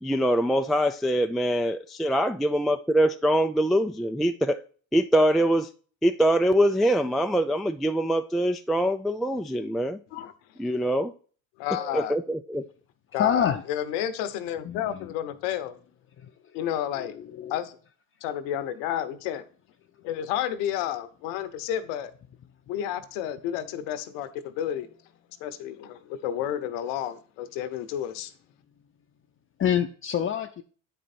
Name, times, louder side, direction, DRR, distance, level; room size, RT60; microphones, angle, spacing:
voice 1, 0.0-4.6 4.9-5.7 6.0-10.0 10.6-11.1 11.9-12.6, equal, ahead, 0.3 m, -23 dB
voice 2, 11.6-12.2 13.1-15.8 16.5-17.2 17.5-17.8 18.2-19.4 20.0-22.1 22.7-24.9 25.4-28.3, left 10 dB, 75° left, 0.9 m, -31 dB
voice 3, 13.2-13.6 14.6-15.1 16.2-16.3 17.0-17.6 29.6-30.6, left 9 dB, 35° left, 0.6 m, -27 dB
9.2 x 4.5 x 4.2 m
hypercardioid pair, 75°, 37 cm